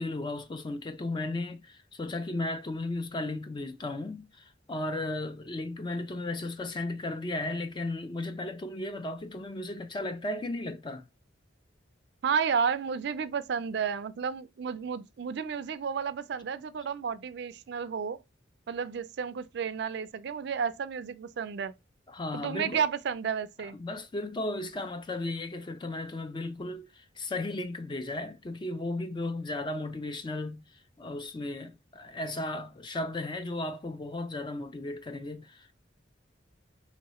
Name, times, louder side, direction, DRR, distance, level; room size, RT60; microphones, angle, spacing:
voice 1, 0.0-11.1 22.1-22.8 23.7-30.6 31.0-35.7, left 2 dB, 25° left, 0.3 m, -35 dB
voice 2, 12.2-18.2 18.7-21.7 22.3-23.8, right 6 dB, 60° right, 0.3 m, -32 dB
3.0 x 2.8 x 4.1 m
head